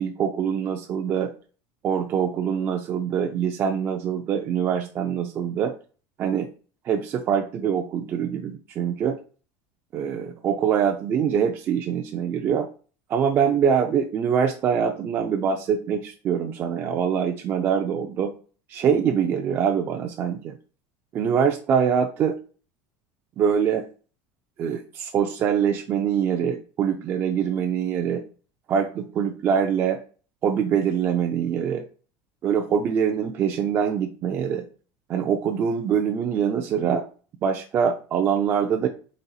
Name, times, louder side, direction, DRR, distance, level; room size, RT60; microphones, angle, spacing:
voice 1, 0.0-1.3 1.8-5.7 6.2-6.5 6.8-9.2 9.9-12.7 13.1-18.3 18.7-20.5 21.1-22.4 23.4-23.9 24.6-28.2 28.7-30.0 30.4-31.8 32.4-34.6 35.1-37.1 37.4-38.9, right 7 dB, 30° right, 3 dB, 0.3 m, -24 dB
4.0 x 2.3 x 3.9 m, 0.38 s
cardioid pair, 165°, 8 cm